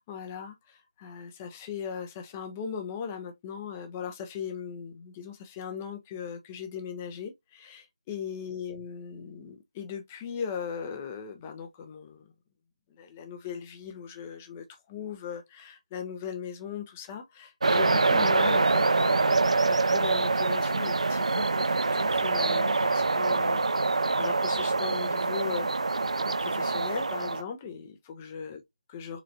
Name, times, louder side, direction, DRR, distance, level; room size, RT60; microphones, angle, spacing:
voice 1, 0.0-12.3 12.9-26.1 26.4-28.6 28.9-29.2, left 7 dB, 10° left, 0.4 m, -39 dB
sound 1, 17.6-27.4, right 3 dB, 55° right, 0.4 m, -25 dB
3.8 x 3.1 x 2.6 m
figure-of-eight pair, 165°, 4 cm